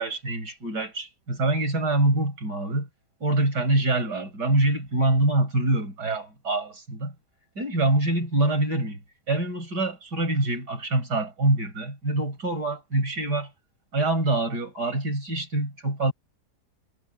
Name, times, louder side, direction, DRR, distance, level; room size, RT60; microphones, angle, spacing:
voice 1, 0.0-2.9 3.2-7.1 7.6-9.0 9.3-13.5 13.9-16.1, right 2 dB, 75° right, 5.9 m, -25 dB
omnidirectional pair, 1.8 m